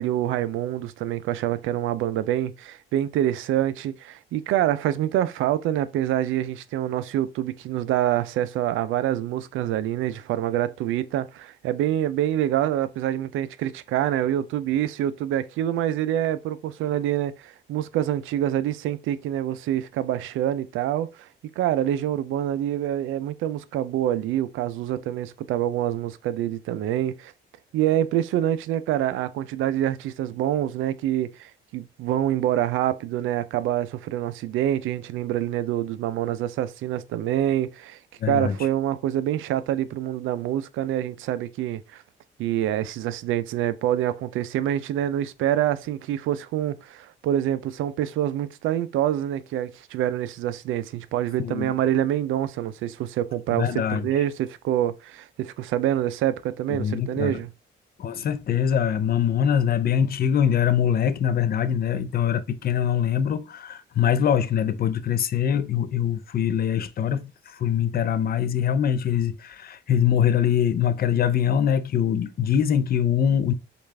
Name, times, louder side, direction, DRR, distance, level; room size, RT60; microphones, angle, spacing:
voice 1, 0.0-21.3 21.6-27.3 27.7-38.0 38.3-42.0 42.4-57.5, right 12 dB, 85° right, 0.5 m, -26 dB
voice 2, 38.2-38.6 51.4-51.7 53.5-54.1 56.8-57.4 58.0-73.5, left 9 dB, 50° left, 0.5 m, -23 dB
6.6 x 2.4 x 3.3 m
cardioid pair, 90°, 20 cm